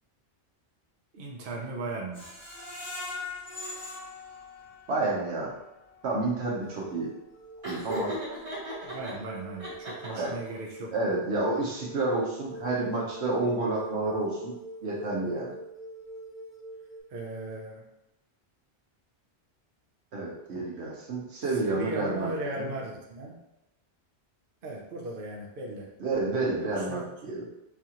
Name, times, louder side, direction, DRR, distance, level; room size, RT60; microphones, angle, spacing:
voice 1, 1.1-2.3 8.8-10.9 17.1-17.9 21.6-23.4 24.6-25.9 26.6-27.4, right 2 dB, 60° right, -2 dB, 0.8 m, -37 dB
Screech, 2.1-5.1 5.5-5.6 6.0-6.1, left 3 dB, 45° left, 1.1 m, -40 dB
voice 2, 4.9-5.5 6.0-7.2 7.6-8.2 10.1-10.4 10.9-14.6 14.8-15.6 20.1-22.7 26.0-27.4, right 2 dB, 85° right, -3 dB, 1.2 m, -30 dB
sound 1, 6.4-17.0, right 1 dB, 85° left, 1.3 m, -45 dB
Laughter, 7.6-9.1 9.6-10.5, equal, 30° right, 1.3 m, -36 dB
4.7 x 2.4 x 2.8 m, 0.92 s
omnidirectional pair, 1.1 m